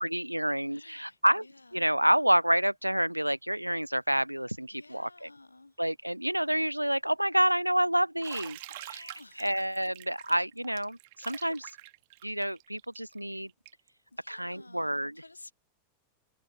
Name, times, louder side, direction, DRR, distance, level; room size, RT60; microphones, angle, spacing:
voice 1, 0.0-1.5 1.7-5.3 5.8-11.7 12.2-13.5 14.3-15.2, right 1 dB, 90° right, 0.3 m, -28 dB
voice 2, 0.7-1.7 4.7-5.7 8.7-9.5 14.1-15.5, left 2 dB, 85° left, 1.2 m, -54 dB
Bathtub (filling or washing), 8.2-13.9, right 21 dB, 50° right, 1.5 m, -47 dB
figure-of-eight pair, 90°, 0 cm